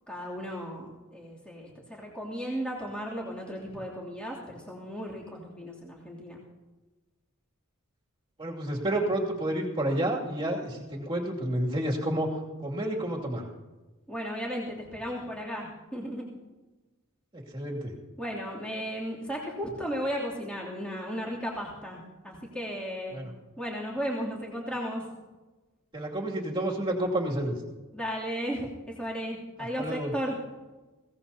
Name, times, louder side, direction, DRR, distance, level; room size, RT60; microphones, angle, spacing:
voice 1, 0.1-6.4 14.1-16.2 18.2-23.2 23.6-25.0 27.9-30.4, equal, 5° left, -5 dB, 2.9 m, -35 dB
voice 2, 8.4-13.4 17.3-17.9 23.1-23.3 25.9-27.6 29.8-30.1, right 1 dB, 25° right, -2 dB, 2.5 m, -30 dB
22.0 x 17.0 x 2.8 m, 1.2 s
head